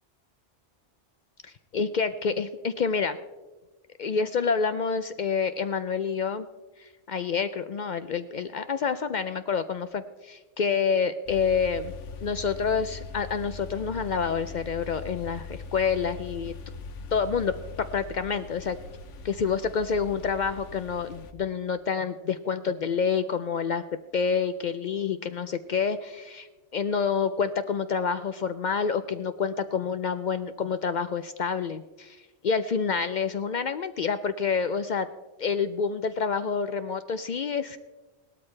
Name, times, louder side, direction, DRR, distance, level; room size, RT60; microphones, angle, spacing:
voice 1, 1.7-3.2 4.0-6.5 6.8-11.9 12.2-16.5 17.1-18.8 19.2-23.8 24.1-26.5 26.7-32.2 32.4-35.1 35.4-37.8, left 6 dB, 60° left, 11 dB, 0.4 m, -28 dB
sound 1, 11.3-21.3, left 4 dB, 80° left, 1.1 m, -41 dB
17.5 x 12.5 x 3.2 m, 1.2 s
omnidirectional pair, 1.2 m